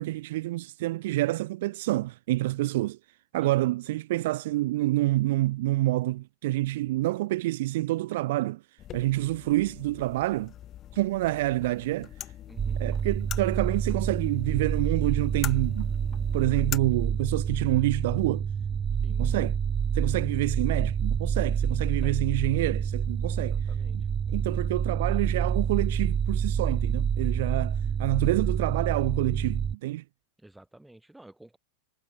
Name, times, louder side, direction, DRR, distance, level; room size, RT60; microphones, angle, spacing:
voice 1, 0.0-3.0 3.3-8.6 8.9-10.5 10.9-12.1 12.8-15.9 16.3-18.5 19.2-19.6 19.9-23.6 23.9-24.0 24.3-30.0, right 17 dB, 55° right, 0.3 m, -27 dB
sound 1, 8.8-16.8, left 12 dB, 30° left, 0.7 m, -43 dB
voice 2, 12.5-12.8 19.0-19.3 21.7-22.2 23.4-24.0 30.4-31.6, right 1 dB, 5° right, 4.6 m, -52 dB
sound 2, 12.6-29.8, right 7 dB, 20° right, 0.8 m, -28 dB
figure-of-eight pair, 90°, 0 cm